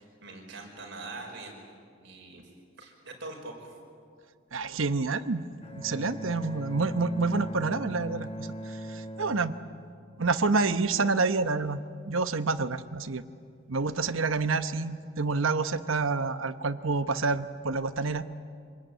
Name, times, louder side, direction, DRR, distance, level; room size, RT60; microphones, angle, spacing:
voice 1, 0.0-1.5 1.9-2.4 2.8-3.7, right 2 dB, 60° right, 1 dB, 5.4 m, -43 dB
voice 2, 4.5-5.4 5.8-9.5 10.2-13.2 13.7-18.2, right 3 dB, 85° right, 11 dB, 1.0 m, -28 dB
Bowed string instrument, 5.6-10.6, equal, 30° left, 1.5 m, -40 dB
26.0 x 21.0 x 9.2 m, 2.2 s
head